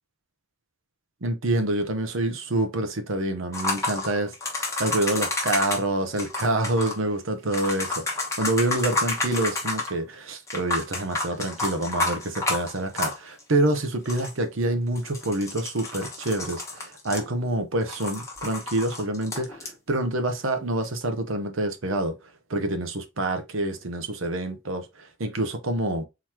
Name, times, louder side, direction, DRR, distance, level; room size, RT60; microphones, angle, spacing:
voice 1, 1.2-22.1 22.5-26.0, right 1 dB, 70° right, 0.9 m, -27 dB
sound 1, 3.5-5.8 6.2-7.0 7.5-9.9 10.5-13.4 13.7-13.8 14.0-14.4 15.0-17.6 17.9-19.7 20.8-20.9, left 2 dB, 15° left, 1.1 m, -30 dB
3.9 x 3.1 x 4.4 m
head